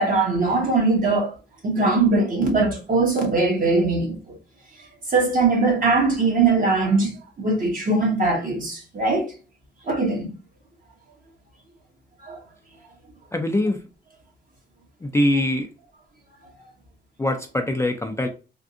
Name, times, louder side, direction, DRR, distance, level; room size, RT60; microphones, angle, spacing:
voice 1, 0.0-1.3 1.6-4.4 5.1-7.1 7.4-9.2 9.9-10.3 12.2-12.4, right 3 dB, 45° right, 1.3 m, -21 dB
voice 2, 13.3-13.8 15.0-15.7 17.2-18.3, left 1 dB, 15° left, 0.4 m, -23 dB
3.6 x 2.6 x 2.5 m
cardioid pair, 95°, 19 cm